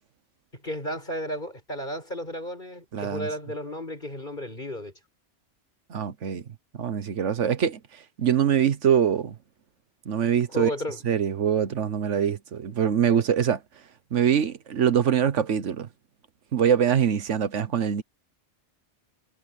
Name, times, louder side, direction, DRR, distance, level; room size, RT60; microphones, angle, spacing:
voice 1, 0.5-4.9 10.5-11.0, equal, 40° left, 7.1 m, -33 dB
voice 2, 2.9-3.3 5.9-6.4 6.8-7.8 8.2-9.3 10.1-10.7 11.0-13.6 14.1-15.9 16.5-18.0, right 8 dB, 80° right, 1.4 m, -23 dB
omnidirectional pair, 1.2 m